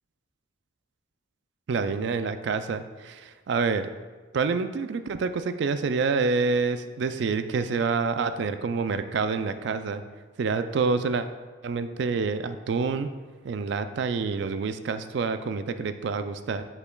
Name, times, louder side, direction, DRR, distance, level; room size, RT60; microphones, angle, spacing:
voice 1, 1.7-3.9 4.3-10.0 10.4-11.3 11.6-13.1 13.4-16.6, right 4 dB, 60° right, 10 dB, 0.3 m, -27 dB
8.2 x 5.5 x 2.3 m, 1.3 s
head